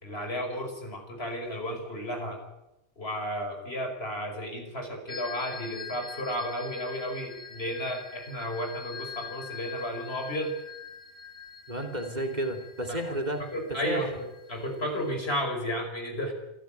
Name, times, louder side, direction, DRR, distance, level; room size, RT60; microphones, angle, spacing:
voice 1, 0.0-2.4 3.0-10.5 13.5-16.3, equal, 65° left, 3 dB, 5.7 m, -33 dB
sound 1, 5.1-15.4, left 6 dB, 25° left, 2.1 m, -44 dB
voice 2, 11.7-14.1, right 1 dB, 40° right, 4 dB, 2.9 m, -32 dB
26.5 x 14.5 x 9.2 m, 0.94 s
omnidirectional pair, 1.1 m